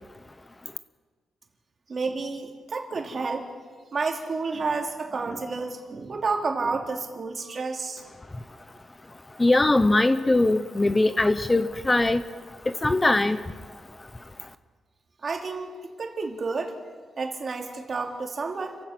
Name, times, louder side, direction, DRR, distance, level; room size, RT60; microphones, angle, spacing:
voice 1, 1.9-3.5 3.9-8.0 15.2-15.7 16.0-16.7 17.2-18.8, right 4 dB, 40° right, 2 dB, 3.0 m, -30 dB
voice 2, 9.3-13.5 14.0-14.1 14.4-14.5, left 2 dB, 20° left, 11 dB, 0.7 m, -22 dB
30.0 x 15.5 x 6.0 m, 1.5 s
cardioid pair, 115°, 0 cm